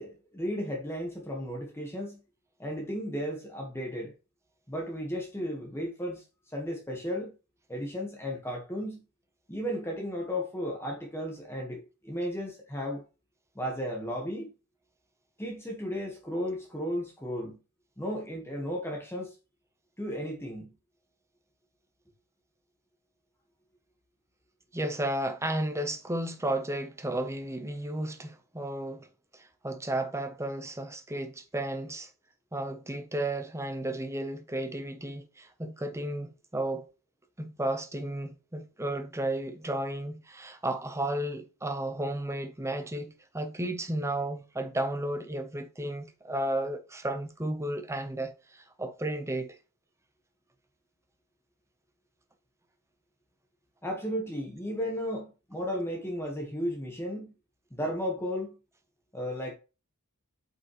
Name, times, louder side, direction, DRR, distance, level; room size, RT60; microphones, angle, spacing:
voice 1, 0.0-2.2 2.6-4.1 4.7-6.2 6.5-7.3 7.7-9.0 9.5-13.0 13.5-14.5 15.4-17.6 18.0-19.3 20.0-20.7 53.8-57.3 57.7-58.5 59.1-59.5, equal, 10° left, 1.4 m, -34 dB
voice 2, 24.7-29.1 29.3-32.1 32.5-36.9 37.4-49.6, right 1 dB, 15° right, 0.8 m, -33 dB
8.0 x 5.3 x 3.1 m
head